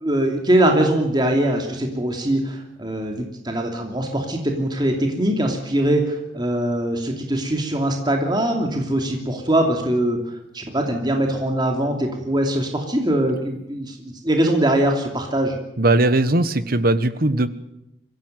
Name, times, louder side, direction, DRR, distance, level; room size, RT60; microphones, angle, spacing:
voice 1, 0.0-10.2 10.5-15.5, right 1 dB, 20° right, 3 dB, 2.8 m, -22 dB
voice 2, 15.8-17.5, right 2 dB, 50° right, 13 dB, 1.3 m, -19 dB
24.0 x 16.0 x 9.2 m, 0.85 s
head